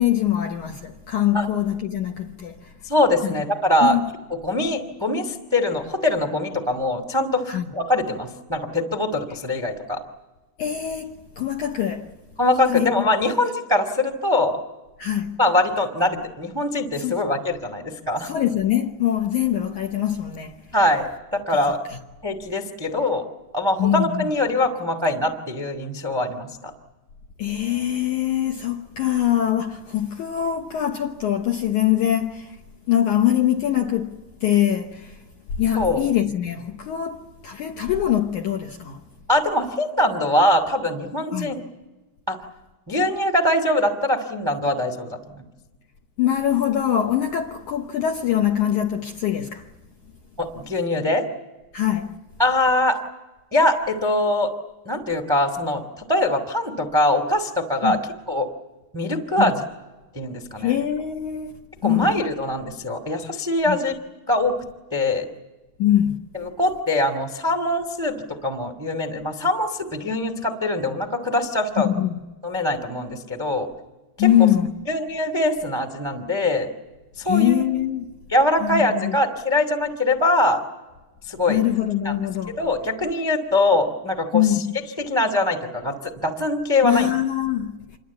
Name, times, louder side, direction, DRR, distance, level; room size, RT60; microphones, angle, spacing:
voice 1, 0.0-2.7 3.2-3.4 3.8-4.1 7.5-7.7 10.6-12.1 12.7-13.0 15.0-15.4 17.0-17.2 18.2-20.6 21.9-22.0 23.8-24.3 27.4-32.6 32.9-35.2 35.6-39.0 41.3-41.5 46.2-49.7 51.7-52.2 57.8-58.0 59.4-59.5 60.6-62.2 63.7-63.8 65.8-66.2 71.8-72.2 74.2-74.7 77.2-78.1 78.6-79.2 81.5-82.6 84.3-84.7 86.8-87.8, left 11 dB, 70° left, 1.8 m, -23 dB
voice 2, 2.8-4.0 4.4-10.0 12.4-14.6 15.4-18.3 20.7-21.8 22.2-23.2 23.5-26.5 35.7-36.0 39.3-41.6 42.3-42.4 42.9-45.4 50.4-51.3 52.4-53.0 53.5-54.5 54.8-58.0 58.3-58.5 58.9-59.6 60.1-60.7 61.8-63.9 64.3-64.6 64.9-65.2 66.3-71.9 72.4-73.7 74.2-74.3 74.9-76.7 77.2-77.6 78.3-80.6 81.3-81.6 82.0-82.1 82.6-84.6 85.0-87.1, left 1 dB, 25° right, 0.5 m, -22 dB
27.5 x 21.5 x 8.3 m
omnidirectional pair, 4.9 m